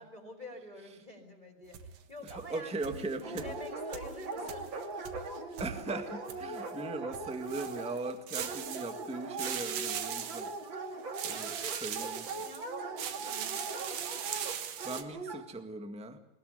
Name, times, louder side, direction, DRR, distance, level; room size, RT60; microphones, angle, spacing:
voice 1, 0.0-4.7 10.9-13.6, left 1 dB, 15° left, 2 dB, 4.2 m, -48 dB
sound 1, 1.7-2.6 2.8-6.7 7.1-9.1 9.4-10.7 11.1-12.7 13.0-15.0, right 9 dB, 65° right, 2.5 m, -40 dB
voice 2, 2.3-3.5 5.2-5.3 5.6-10.5 11.2-11.5 11.8-12.2 14.5-16.2, right 2 dB, 5° right, 6 dB, 0.9 m, -39 dB
Dog, 3.2-15.4, right 3 dB, 40° right, 2.6 m, -40 dB
21.5 x 20.0 x 8.2 m, 0.83 s
omnidirectional pair, 3.5 m